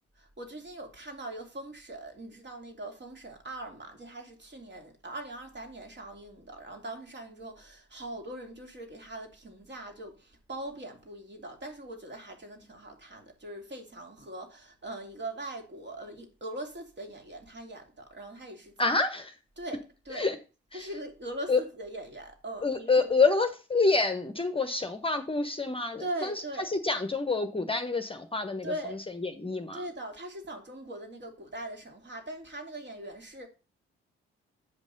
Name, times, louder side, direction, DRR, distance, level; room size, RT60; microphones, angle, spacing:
voice 1, 0.2-19.0 19.6-20.4 20.7-23.4 26.0-26.7 28.6-29.0 29.7-33.5, right 1 dB, 35° right, 2.5 m, -41 dB
voice 2, 18.8-19.3 20.1-20.4 20.7-20.9 21.5-21.6 22.6-28.7 29.2-29.8, left 3 dB, 15° left, 1.1 m, -27 dB
8.4 x 5.2 x 5.3 m
hypercardioid pair, 45°, 30 cm